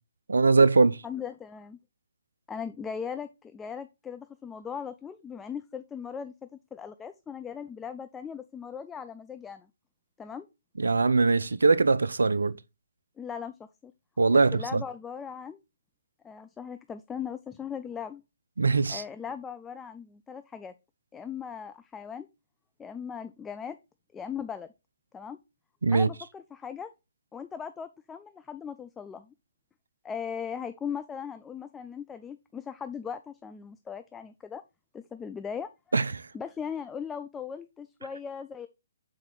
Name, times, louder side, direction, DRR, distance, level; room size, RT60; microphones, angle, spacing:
voice 1, 0.3-1.0 10.8-12.6 14.2-14.8 18.6-19.0 25.8-26.1 35.9-36.2, right 4 dB, 70° right, 0.4 m, -22 dB
voice 2, 1.0-1.8 2.5-9.7 10.2-10.5 13.2-13.9 14.3-15.6 16.2-18.2 18.9-20.7 21.1-22.3 22.8-23.8 24.1-24.7 25.1-25.4 25.9-26.9 27.3-29.3 30.0-34.6 34.9-35.7 36.3-38.7, left 7 dB, 10° left, 0.3 m, -38 dB
6.3 x 4.2 x 3.7 m
figure-of-eight pair, 130°, 0 cm